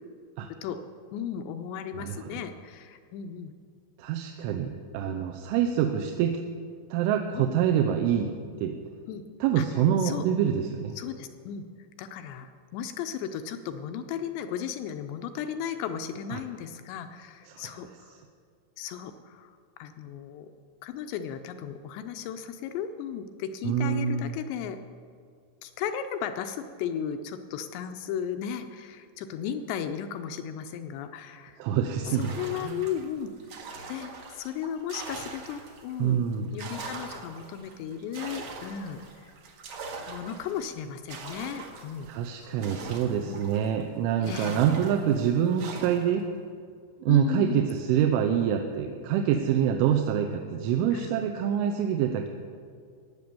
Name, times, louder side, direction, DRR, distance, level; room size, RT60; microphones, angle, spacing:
voice 1, 0.5-0.8 1.1-3.5 5.1-5.2 7.4-7.5 9.1-9.2 9.6-10.2 11.0-11.6 12.0-18.2 18.8-19.5 19.8-20.5 20.8-24.8 25.6-31.6 32.0-33.6 33.9-36.2 36.5-39.3 40.1-42.1 43.2-43.4 44.2-44.6 47.1-47.7 50.9-51.1, left 8 dB, 85° left, 8 dB, 2.5 m, -35 dB
voice 2, 1.9-2.3 4.0-6.4 6.9-8.7 9.4-10.9 16.3-16.4 17.5-17.7 23.6-24.4 31.6-32.8 36.0-36.6 42.1-46.3 47.0-52.3, right 9 dB, 85° right, 4 dB, 3.2 m, -26 dB
sound 1, 32.1-35.9 36.3-43.8 44.2-46.2, right 4 dB, 70° right, 1.6 m, -42 dB
15.5 x 9.5 x 6.9 m, 2.2 s
omnidirectional pair, 5.5 m